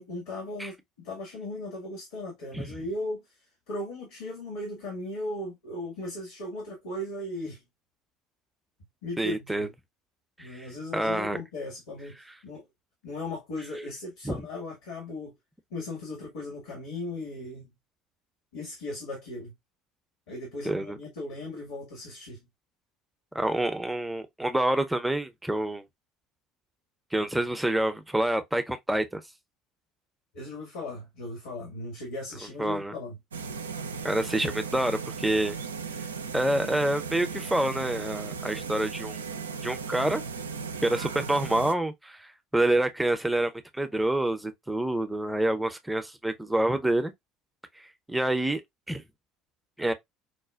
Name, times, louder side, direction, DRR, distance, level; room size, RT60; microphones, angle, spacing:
voice 1, 0.0-3.2 3.7-7.6 9.0-9.7 10.4-12.6 13.0-15.3 15.7-17.7 18.5-19.5 20.3-22.4 30.3-33.2, left 1 dB, 70° left, 1.4 m, -37 dB
voice 2, 9.2-9.7 10.4-10.7 10.9-11.4 14.2-14.4 20.6-21.0 23.3-25.8 27.1-29.2 32.6-32.9 34.0-35.6 36.3-39.2 39.6-40.2 40.8-42.3 42.5-47.1 48.1-48.6 48.9-49.0 49.8-49.9, right 1 dB, 10° right, 0.6 m, -27 dB
sound 1, 33.3-41.7, right 5 dB, 85° right, 0.3 m, -36 dB
4.9 x 2.2 x 2.3 m
figure-of-eight pair, 60°, 0 cm